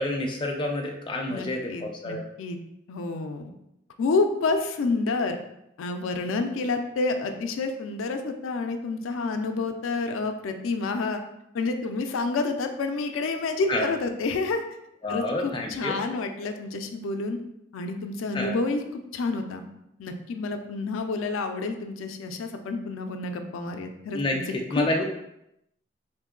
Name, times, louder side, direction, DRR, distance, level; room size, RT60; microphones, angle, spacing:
voice 1, 0.0-2.2 13.7-13.9 15.0-16.0 18.3-18.6 24.1-25.0, left 1 dB, 25° left, 1 dB, 0.4 m, -29 dB
voice 2, 1.3-2.6 2.9-3.5 4.0-5.4 5.8-11.2 11.5-14.6 15.1-17.4 17.7-19.6 20.0-24.4 24.7-25.0, left 3 dB, 90° left, 6 dB, 0.4 m, -29 dB
2.9 x 2.6 x 3.7 m, 0.82 s
head